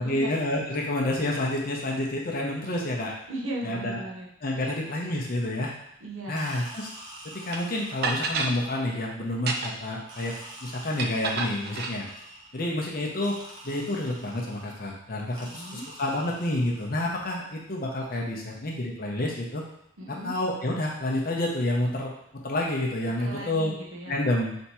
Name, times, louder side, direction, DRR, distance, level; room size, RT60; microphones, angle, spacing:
voice 1, 0.0-3.1 3.6-4.0 4.4-5.7 6.3-6.9 7.4-10.3 10.6-12.1 12.5-13.4 13.6-19.6 20.1-22.1 22.4-23.7 24.1-24.5, left 1 dB, 45° left, -1 dB, 0.7 m, -29 dB
voice 2, 3.3-4.7 6.0-6.5 15.4-15.9 20.0-20.3 23.2-24.2, right 1 dB, 75° right, -2 dB, 0.8 m, -37 dB
sound 1, 6.4-8.9 10.1-12.7 13.2-14.8 15.4-17.0, right 1 dB, 20° right, 0.7 m, -46 dB
sound 2, 7.5-7.6 8.0-8.6 9.3-9.9 11.0-12.0, right 3 dB, 50° right, 0.4 m, -29 dB
3.4 x 2.8 x 4.2 m, 0.75 s
head